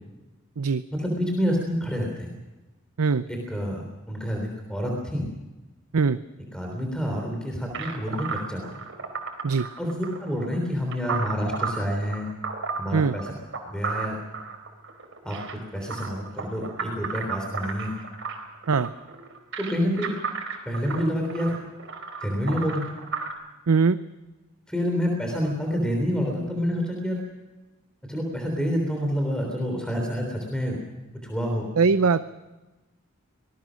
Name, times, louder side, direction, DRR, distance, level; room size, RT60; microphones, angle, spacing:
voice 1, 0.9-2.3 3.3-5.3 6.5-8.8 9.8-12.3 12.8-13.3 13.6-14.2 15.2-15.4 15.7-17.9 19.6-20.1 20.6-21.6 22.2-22.8 24.7-27.2 28.1-30.8 31.2-31.7, equal, 5° left, 1 dB, 3.4 m, -28 dB
sound 1, 7.7-23.3, right 5 dB, 60° right, 4.2 m, -34 dB
voice 2, 23.7-24.0 31.8-32.2, right 5 dB, 85° right, 12 dB, 0.6 m, -21 dB
25.5 x 19.0 x 6.3 m, 1.1 s
head